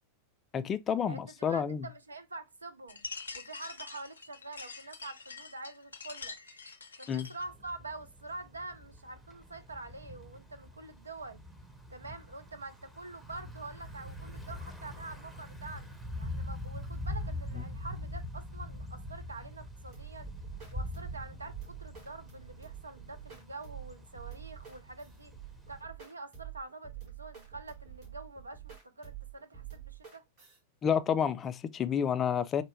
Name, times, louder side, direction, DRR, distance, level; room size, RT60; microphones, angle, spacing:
voice 1, 0.5-1.9 7.1-7.3 17.5-17.6 30.8-32.6, left 7 dB, 25° left, 0.3 m, -30 dB
voice 2, 1.1-3.0 3.3-6.4 7.0-11.4 11.9-20.3 20.7-25.3 25.7-30.2, right 2 dB, 80° right, 0.5 m, -46 dB
sound 1, 2.9-7.5, left 4 dB, 75° left, 0.6 m, -45 dB
Thunder / Bicycle, 7.4-25.8, left 1 dB, 5° right, 0.7 m, -43 dB
sound 2, 19.9-30.6, right 11 dB, 45° right, 2.6 m, -48 dB
4.2 x 2.2 x 3.1 m
figure-of-eight pair, 90°, 0 cm